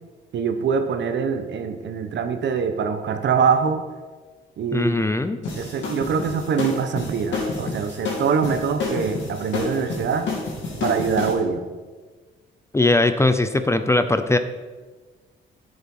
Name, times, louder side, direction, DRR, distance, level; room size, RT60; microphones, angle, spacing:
voice 1, 0.3-3.8 4.6-5.0 5.6-10.3 10.8-11.7, right 6 dB, 65° right, 8 dB, 1.1 m, -24 dB
voice 2, 4.7-5.4 12.7-14.4, left 2 dB, 15° left, 10 dB, 0.6 m, -20 dB
sound 1, 5.4-11.3, left 3 dB, 65° left, 3.5 m, -29 dB
10.5 x 7.1 x 5.5 m, 1.4 s
cardioid pair, 90°, 20 cm